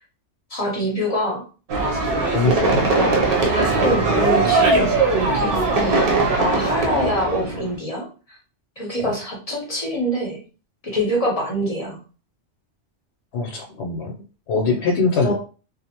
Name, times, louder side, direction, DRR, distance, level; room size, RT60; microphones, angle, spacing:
voice 1, 0.5-1.4 2.9-3.1 3.8-6.0 6.4-8.4 8.8-10.4 10.8-12.0 15.2-15.3, equal, 40° left, -2 dB, 0.7 m, -25 dB
sound 1, 1.7-7.8, right 3 dB, 55° right, 0.7 m, -20 dB
voice 2, 2.3-2.9 9.0-9.1 13.3-14.1 14.5-15.3, left 3 dB, 70° left, 0 dB, 0.8 m, -22 dB
2.6 x 2.0 x 2.8 m, 0.36 s
omnidirectional pair, 1.2 m